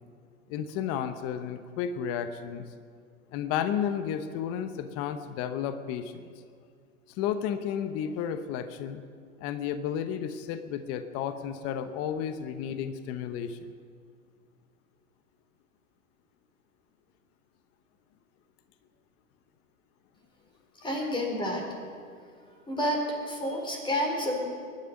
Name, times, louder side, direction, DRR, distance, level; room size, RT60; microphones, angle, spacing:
voice 1, 0.5-2.6 3.3-6.2 7.1-9.0 9.4-13.7, left 8 dB, 35° left, 10 dB, 1.0 m, -32 dB
voice 2, 20.8-21.6 22.7-24.5, equal, 10° left, 1 dB, 3.8 m, -29 dB
23.5 x 12.0 x 5.3 m, 2.2 s
hypercardioid pair, 120°, 41 cm